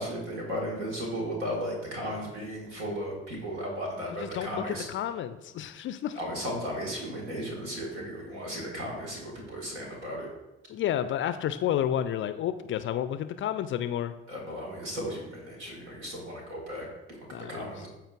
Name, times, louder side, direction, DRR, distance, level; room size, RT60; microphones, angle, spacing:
voice 1, 0.0-4.9 6.2-10.3 14.3-17.9, equal, 75° right, -2 dB, 1.8 m, -35 dB
voice 2, 4.2-6.2 10.7-14.1 17.3-17.9, left 10 dB, 35° left, 12 dB, 0.4 m, -31 dB
13.0 x 4.3 x 2.5 m, 1.0 s
figure-of-eight pair, 50°, 35 cm